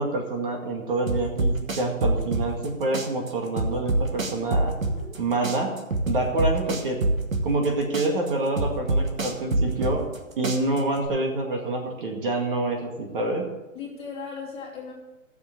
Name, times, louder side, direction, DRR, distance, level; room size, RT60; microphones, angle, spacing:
voice 1, 0.0-4.7 5.2-5.7 6.1-7.0 7.4-10.0 10.4-13.4, right 2 dB, 40° right, 2 dB, 2.0 m, -27 dB
sound 1, 1.1-2.7 2.9-5.2 5.4-7.7 7.9-10.2 10.4-11.1, right 2 dB, 80° right, 2.0 m, -25 dB
voice 2, 13.7-14.9, left 5 dB, 15° left, -4 dB, 2.6 m, -37 dB
13.0 x 7.1 x 6.5 m, 1.1 s
figure-of-eight pair, 135°, 40 cm